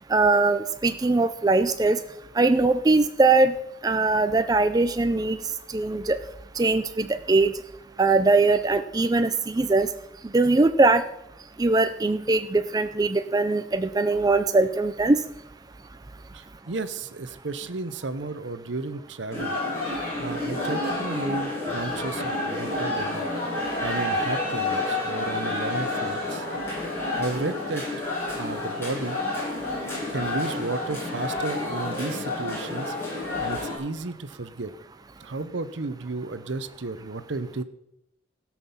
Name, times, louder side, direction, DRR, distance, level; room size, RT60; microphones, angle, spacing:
voice 1, 0.1-2.0 2.4-3.5 3.8-5.4 5.7-6.2 6.6-7.5 8.0-9.9 10.3-11.0 11.6-15.2, right 3 dB, 20° right, 9 dB, 0.4 m, -21 dB
voice 2, 16.3-19.6 20.2-23.3 23.8-26.5 27.2-27.9 28.4-29.2 29.8-34.7 35.2-37.6, right 3 dB, 65° right, 13 dB, 0.8 m, -33 dB
sound 1, 19.3-33.8, left 2 dB, 10° left, 5.8 m, -29 dB
16.5 x 6.0 x 7.0 m, 0.84 s
head